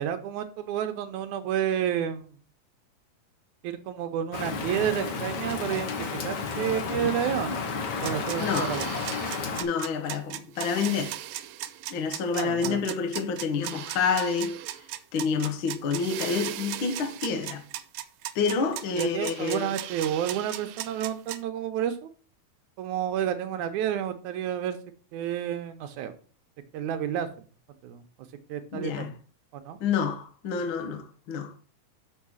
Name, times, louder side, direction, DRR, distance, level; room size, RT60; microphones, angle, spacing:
voice 1, 0.0-2.4 3.6-7.6 8.0-8.9 12.3-12.8 18.9-22.1 22.8-24.8 25.1-26.1 26.7-27.3 27.8-28.0 28.5-29.1 29.5-29.8, right 9 dB, 75° right, 2.2 m, -30 dB
Rain, 4.3-9.6, left 4 dB, 85° left, 0.9 m, -32 dB
sound 1, 8.0-21.4, right 13 dB, 90° right, 2.2 m, -37 dB
voice 2, 8.4-8.7 9.6-11.2 11.9-14.6 15.1-17.6 18.3-19.7 28.7-29.1 29.8-31.5, left 5 dB, 65° left, 1.2 m, -28 dB
6.5 x 5.6 x 6.1 m
omnidirectional pair, 3.8 m